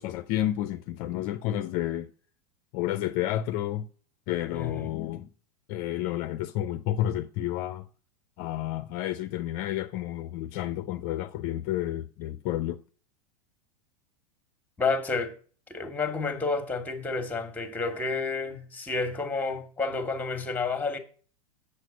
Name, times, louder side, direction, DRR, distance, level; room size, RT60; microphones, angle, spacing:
voice 1, 0.0-2.1 2.7-3.9 4.3-5.3 5.7-7.9 8.4-12.8, left 13 dB, 45° left, 0.5 m, -30 dB
voice 2, 4.5-4.9 14.8-15.3 15.7-21.0, left 4 dB, 10° left, 1.5 m, -30 dB
7.5 x 6.5 x 5.1 m
hypercardioid pair, 100°, 20 cm